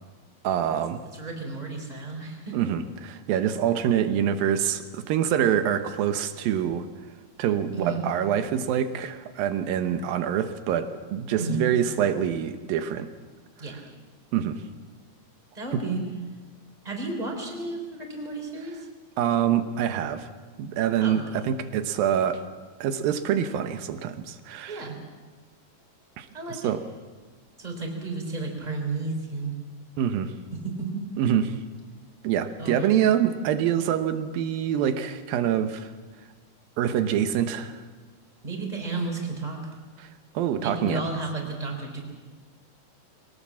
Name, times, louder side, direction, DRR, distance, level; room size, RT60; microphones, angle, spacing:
voice 1, 0.4-1.0 2.5-6.9 7.4-13.1 14.3-14.6 15.7-15.8 19.2-20.3 20.6-22.4 22.8-24.9 26.2-26.3 26.6-26.8 30.0-30.3 31.2-31.6 32.2-35.9 36.8-37.8 40.0-40.1 40.3-41.0, right 9 dB, 90° right, 9 dB, 2.8 m, -25 dB
voice 2, 1.1-2.7 7.7-8.1 11.4-11.6 13.6-13.8 15.5-16.0 16.8-18.9 21.0-21.2 24.7-25.0 26.3-26.8 27.6-29.5 30.5-31.0 32.6-33.0 38.4-39.7 40.6-42.0, right 3 dB, 10° right, 2 dB, 3.4 m, -32 dB
22.5 x 18.5 x 7.4 m, 1.4 s
omnidirectional pair, 4.0 m